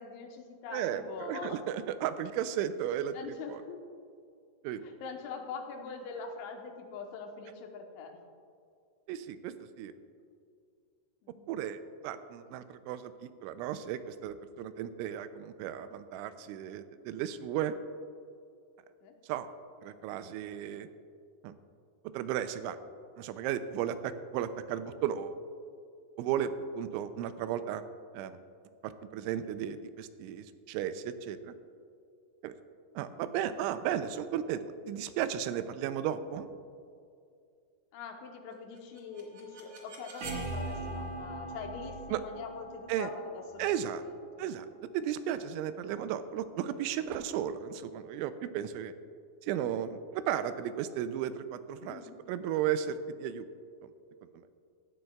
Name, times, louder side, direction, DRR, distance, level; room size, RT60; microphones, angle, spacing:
voice 1, 0.0-1.6 3.1-3.8 4.8-8.2 11.2-11.5 12.5-12.6 19.0-19.1 33.1-33.2 37.9-44.4 51.8-52.2, left 5 dB, 90° left, 3 dB, 3.3 m, -43 dB
voice 2, 0.7-3.2 3.5-3.6 4.6-4.8 9.1-9.9 11.5-13.1 13.4-17.7 19.3-19.5 19.8-20.9 21.4-21.5 22.1-22.8 23.2-25.4 26.2-27.8 28.1-28.3 28.8-31.5 32.4-32.5 33.0-34.6 34.9-36.5 42.1-42.2 42.9-43.1 43.6-44.0 44.4-44.7 44.9-48.9 49.4-52.0 52.3-53.5, right 10 dB, 90° right, 11 dB, 3.0 m, -34 dB
sound 1, 38.8-44.6, right 2 dB, 70° right, 1.4 m, -41 dB
16.0 x 12.0 x 2.3 m, 2.4 s
omnidirectional pair, 5.3 m